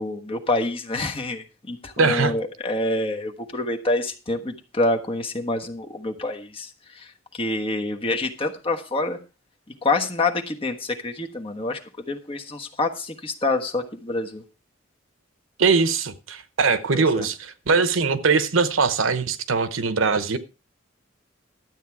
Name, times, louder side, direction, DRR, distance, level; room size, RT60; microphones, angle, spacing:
voice 1, 0.0-6.7 7.0-7.1 7.3-9.2 9.8-11.8 12.1-14.4 16.9-17.3, left 2 dB, 30° left, 1.3 m, -27 dB
voice 2, 2.0-2.3 15.6-20.4, right 4 dB, 80° right, 1.0 m, -21 dB
12.5 x 8.4 x 4.7 m
head